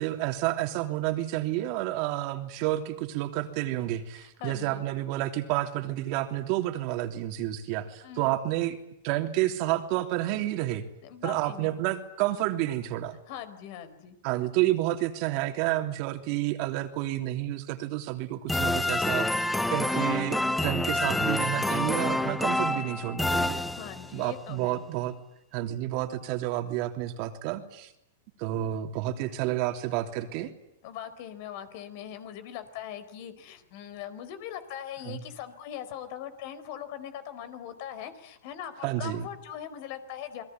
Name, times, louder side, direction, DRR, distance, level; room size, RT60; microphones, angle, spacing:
voice 1, 0.0-8.8 9.0-10.8 11.2-13.2 14.2-23.6 24.1-25.1 25.5-27.9 28.4-30.5 35.1-35.2 38.8-39.3, right 14 dB, 50° right, 6 dB, 3.1 m, -30 dB
voice 2, 4.1-4.9 8.0-8.3 11.0-11.7 13.3-14.2 23.7-24.8 30.8-40.4, left 10 dB, 55° left, 12 dB, 4.5 m, -41 dB
sound 1, 18.5-24.2, left 1 dB, 5° left, 1.2 m, -27 dB
28.5 x 21.5 x 9.3 m, 0.77 s
hypercardioid pair, 130°, 0 cm